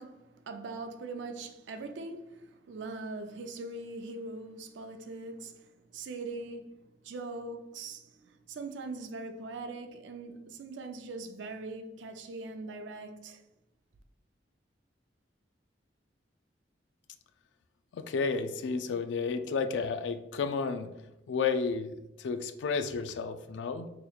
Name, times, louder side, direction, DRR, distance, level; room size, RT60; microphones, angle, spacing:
voice 1, 0.0-13.4, right 3 dB, 90° right, 0.4 m, -41 dB
voice 2, 17.9-20.9 21.3-23.9, left 5 dB, 75° left, 0.3 m, -32 dB
4.9 x 3.0 x 2.3 m
head